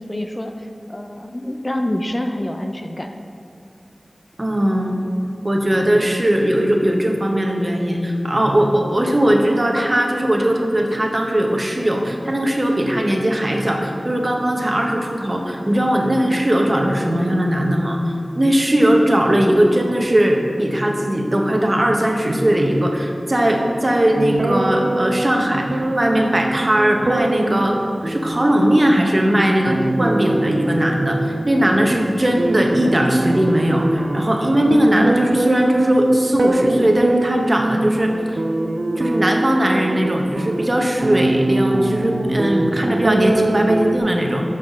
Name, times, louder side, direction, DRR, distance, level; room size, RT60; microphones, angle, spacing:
voice 1, 0.0-3.1, left 1 dB, 30° left, 5 dB, 0.4 m, -27 dB
voice 2, 4.4-5.0 5.4-38.4 39.0-44.4, right 1 dB, 40° right, 2 dB, 0.9 m, -19 dB
sound 1, 24.2-44.0, right 2 dB, 80° right, 0.5 m, -23 dB
6.6 x 5.9 x 5.3 m, 2.5 s
wide cardioid pair, 55°, 0 cm